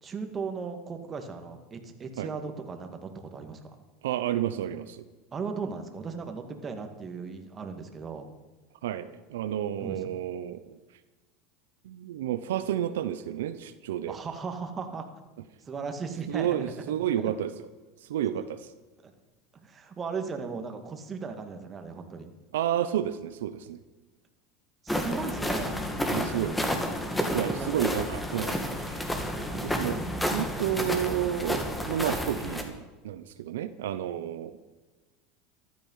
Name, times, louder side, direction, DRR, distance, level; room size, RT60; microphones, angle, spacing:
voice 1, 0.0-3.8 5.3-8.3 9.8-10.1 14.1-15.1 15.6-16.8 17.2-17.3 19.0-19.1 19.5-22.3 24.8-25.9 27.6-27.9 28.4-28.7 34.1-34.2, right 5 dB, 25° right, 5 dB, 2.3 m, -37 dB
voice 2, 4.0-5.0 8.8-10.8 11.8-14.1 16.3-17.5 18.0-18.7 22.5-23.8 26.1-26.6 27.3-29.1 29.5-34.6, right 11 dB, 85° right, 11 dB, 0.9 m, -31 dB
sound 1, 24.9-32.6, equal, 10° left, 2.4 m, -30 dB
15.0 x 12.5 x 5.8 m, 1.2 s
supercardioid pair, 115°, 0 cm